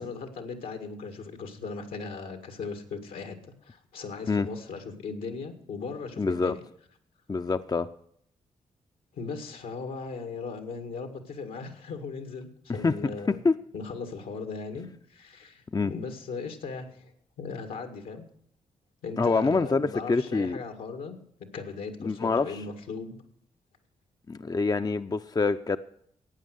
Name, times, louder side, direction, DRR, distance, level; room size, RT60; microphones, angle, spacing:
voice 1, 0.0-6.6 9.1-13.4 13.7-17.1 17.4-18.2 19.0-21.2 21.5-23.2, left 4 dB, 85° left, 5 dB, 2.0 m, -38 dB
voice 2, 6.2-6.6 7.3-7.9 12.8-12.9 13.3-13.6 15.7-15.9 19.2-20.6 22.0-22.6 24.3-25.8, left 4 dB, 25° left, 10 dB, 0.6 m, -26 dB
14.5 x 9.2 x 6.5 m, 0.69 s
supercardioid pair, 45°, 14 cm